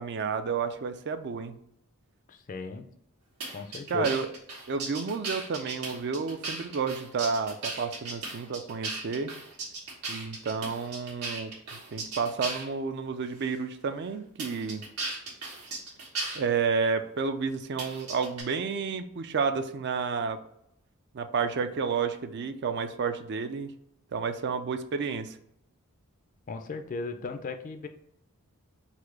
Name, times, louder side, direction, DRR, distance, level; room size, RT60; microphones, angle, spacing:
voice 1, 0.0-1.6 3.9-4.3 4.7-9.3 10.1-11.5 11.9-14.8 16.3-20.4 21.1-23.7 24.1-25.4, right 5 dB, 50° right, 9 dB, 0.4 m, -30 dB
voice 2, 2.3-2.9 3.5-4.2 26.5-27.9, left 4 dB, 35° left, 6 dB, 0.4 m, -36 dB
sound 1, 3.4-12.7 13.4-13.5 14.4-16.4 17.8-18.4, right 3 dB, 90° right, 1.5 m, -36 dB
4.1 x 2.7 x 4.5 m, 0.73 s
head